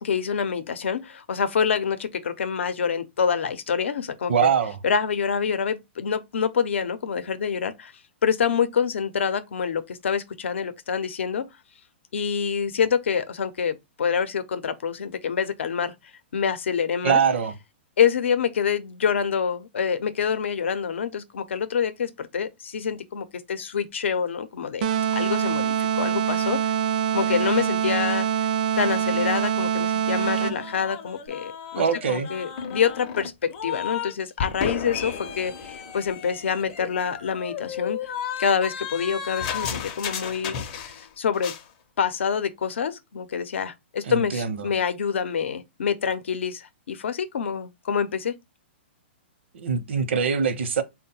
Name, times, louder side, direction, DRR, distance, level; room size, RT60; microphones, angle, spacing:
voice 1, 0.0-4.5 4.8-7.9 8.2-11.5 12.1-15.9 16.3-17.2 18.0-24.8 25.1-26.6 27.1-28.3 28.8-38.0 38.4-40.6 40.8-41.5 42.0-48.4, left 7 dB, 85° left, 0.6 m, -26 dB
voice 2, 4.3-4.8 17.0-17.5 31.8-32.3 44.0-44.7 49.5-50.8, right 6 dB, 70° right, 0.7 m, -23 dB
sound 1, 24.8-30.8, right 8 dB, 45° right, 0.4 m, -24 dB
sound 2, 30.4-34.1 34.4-41.1 41.3-41.6, left 8 dB, 35° left, 0.5 m, -33 dB
3.8 x 2.2 x 4.2 m
hypercardioid pair, 160°, 6 cm